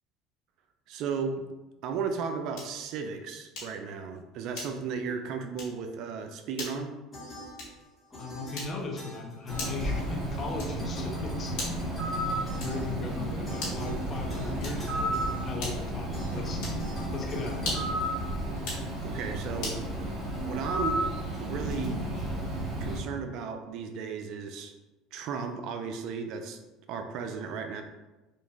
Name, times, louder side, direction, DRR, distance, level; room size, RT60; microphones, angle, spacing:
voice 1, 0.9-1.4 1.8-7.0 19.0-19.8 20.5-21.0 21.4-22.0 22.8-24.7 25.1-26.6 26.9-27.8, right 6 dB, 65° right, 6 dB, 0.3 m, -35 dB
sound 1, 2.5-2.9 3.5-3.9 4.5-5.0 5.5-5.8 6.5-6.8 7.5-7.9 8.5-9.0 9.6-9.9 10.6-10.9 11.5-11.9 12.6-12.9 13.5-13.9 14.6-15.0 15.6-16.0 16.6-16.9 17.5-18.0 18.5-18.9 19.6-19.9, left 2 dB, 70° left, 1.2 m, -38 dB
sound 2, 7.1-10.5 10.8-18.6, left 1 dB, 20° left, 1.2 m, -43 dB
voice 2, 8.2-11.8 12.6-16.8 17.1-17.8, left 3 dB, 40° left, 2 dB, 0.5 m, -37 dB
Bird, 9.5-23.0, right 1 dB, 25° right, 0.9 m, -33 dB
3.1 x 2.4 x 2.3 m, 1.1 s
supercardioid pair, 100°, 0 cm